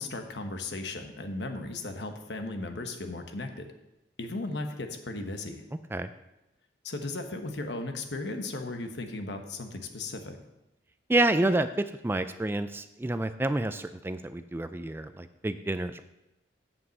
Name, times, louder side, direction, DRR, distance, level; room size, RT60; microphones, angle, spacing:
voice 1, 0.0-3.6 4.2-5.6 6.8-10.4, left 2 dB, 75° left, 5 dB, 1.2 m, -36 dB
voice 2, 11.1-16.0, right 2 dB, 15° right, 11 dB, 0.3 m, -28 dB
8.6 x 5.5 x 7.7 m, 0.92 s
head